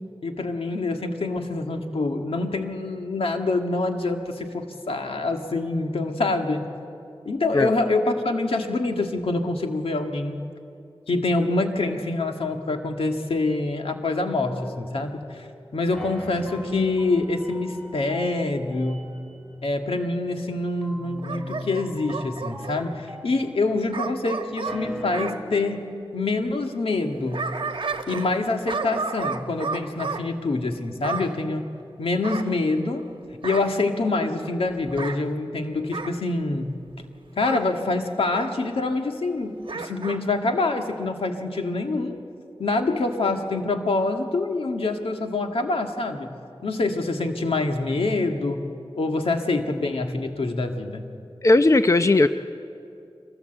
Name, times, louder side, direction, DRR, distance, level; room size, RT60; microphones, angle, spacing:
voice 1, 0.2-6.7 7.3-10.4 11.1-15.5 15.7-19.1 19.6-25.8 26.1-27.5 28.1-31.7 32.0-33.1 33.4-36.8 37.4-42.2 42.6-46.3 46.6-48.6 49.0-51.1, left 2 dB, 85° left, 4 dB, 1.8 m, -26 dB
sound 1, 14.3-15.5 15.9-24.0 24.5-25.4, equal, 5° left, 5.1 m, -39 dB
Bark / Growling, 21.2-22.9 23.9-25.4 27.0-28.4 28.7-30.2 31.0-31.3 32.2-33.0 33.4-33.8 34.9-35.2 35.9-36.2 37.4-37.7 38.3-38.6 39.6-40.2 40.6-40.7, right 4 dB, 60° right, 1.2 m, -32 dB
voice 2, 51.4-52.3, left 2 dB, 35° left, 10 dB, 0.6 m, -17 dB
24.5 x 18.5 x 7.9 m, 2.6 s
wide cardioid pair, 60°, 9 cm